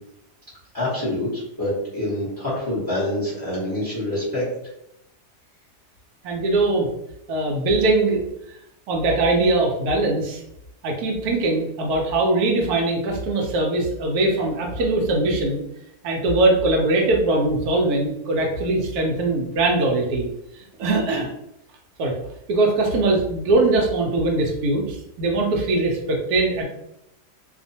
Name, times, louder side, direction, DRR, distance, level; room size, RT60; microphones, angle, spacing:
voice 1, 0.7-4.4, left 1 dB, 20° left, -9 dB, 0.7 m, -26 dB
voice 2, 6.2-6.9 7.3-8.2 8.9-10.4 10.8-15.6 16.0-20.3 20.5-21.3 22.0-22.1 22.5-26.6, right 2 dB, 70° right, 0 dB, 1.0 m, -21 dB
2.8 x 2.1 x 2.6 m, 0.81 s
omnidirectional pair, 1.8 m